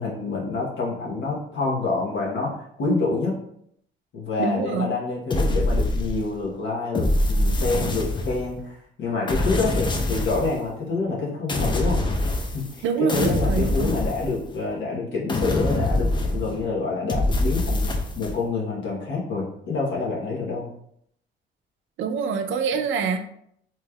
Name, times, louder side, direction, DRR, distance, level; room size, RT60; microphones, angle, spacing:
voice 1, 0.0-3.3 4.1-12.0 12.5-17.8 18.2-20.7, left 3 dB, 70° left, -5 dB, 1.0 m, -27 dB
voice 2, 4.4-4.9 12.8-13.9 22.0-23.2, right 5 dB, 75° right, 7 dB, 0.5 m, -25 dB
sound 1, 5.3-6.4 6.9-8.6 9.3-10.6 11.5-12.8 13.1-14.7 15.3-16.6 17.1-18.4, left 1 dB, 25° left, 0.5 m, -24 dB
3.3 x 2.9 x 2.3 m, 0.69 s
cardioid pair, 90°, 20 cm